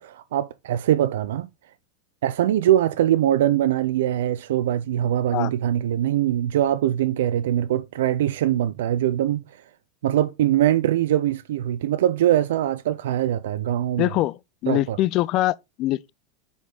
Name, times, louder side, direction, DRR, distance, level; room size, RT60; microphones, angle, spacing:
voice 1, 0.0-1.5 2.2-9.4 10.0-14.1 14.7-15.0, right 12 dB, 65° right, 0.4 m, -22 dB
voice 2, 14.0-16.1, left 16 dB, 45° left, 0.3 m, -24 dB
7.1 x 4.0 x 3.8 m
figure-of-eight pair, 85°, 0 cm